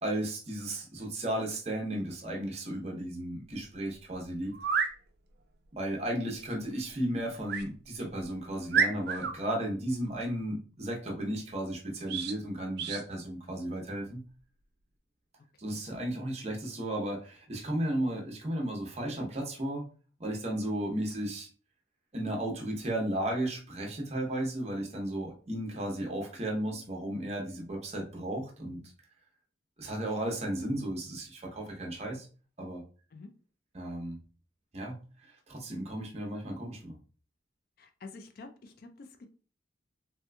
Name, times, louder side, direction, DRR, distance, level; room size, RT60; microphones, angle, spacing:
voice 1, 0.0-4.5 5.7-14.2 15.6-19.8 20.2-21.5 22.1-28.8 29.8-32.3 32.6-32.8 33.7-34.2 34.7-37.0, right 1 dB, 35° right, 0 dB, 0.7 m, -34 dB
sound 1, 4.5-4.9 7.5-7.7 8.2-8.3 8.7-9.3 12.1-12.4 12.8-13.0, right 6 dB, 55° right, 0.4 m, -29 dB
voice 2, 37.8-39.3, left 3 dB, 50° left, 6 dB, 0.3 m, -48 dB
3.3 x 2.9 x 2.2 m, 0.39 s
head